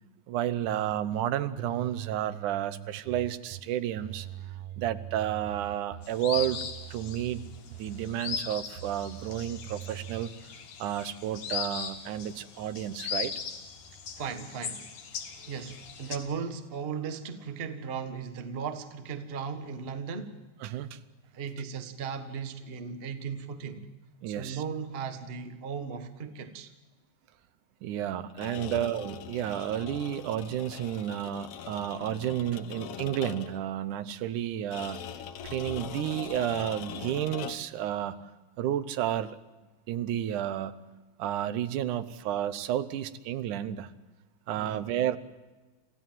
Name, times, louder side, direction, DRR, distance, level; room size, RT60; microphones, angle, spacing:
voice 1, 0.3-4.3 4.8-6.6 6.9-7.4 7.7-10.3 10.8-13.3 20.6-21.0 24.2-24.6 27.8-35.0 35.4-38.2 38.6-39.4 39.9-40.7 41.2-43.9 44.5-45.2, right 11 dB, 90° right, 13 dB, 2.4 m, -31 dB
sound 1, 0.7-1.2 1.6-3.6 4.0-6.1 6.4-8.4 8.8-10.2, right 13 dB, 65° right, 1.3 m, -43 dB
sound 2, 6.0-16.2, left 7 dB, 85° left, 3.3 m, -39 dB
voice 2, 14.2-15.0 15.4-20.4 21.3-23.9 24.3-26.7 28.6-28.9 44.5-44.9, right 6 dB, 35° right, 7 dB, 0.9 m, -37 dB
sound 3, 28.3-33.7 34.7-37.8, left 8 dB, 60° left, 1.8 m, -41 dB
27.0 x 15.5 x 7.5 m, 1.2 s
omnidirectional pair, 3.4 m